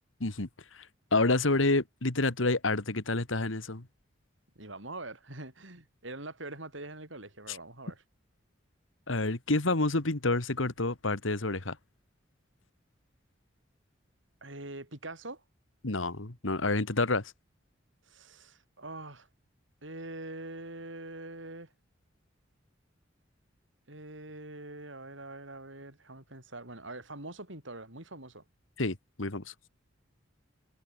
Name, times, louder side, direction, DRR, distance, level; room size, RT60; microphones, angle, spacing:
voice 1, 1.1-3.9 7.5-7.6 9.1-11.8 15.8-17.3 28.8-29.5, left 2 dB, 85° left, 2.0 m, -28 dB
voice 2, 4.6-8.0 14.4-15.4 18.1-19.3 19.8-21.7 23.9-28.4, right 2 dB, 75° right, 7.9 m, -44 dB
head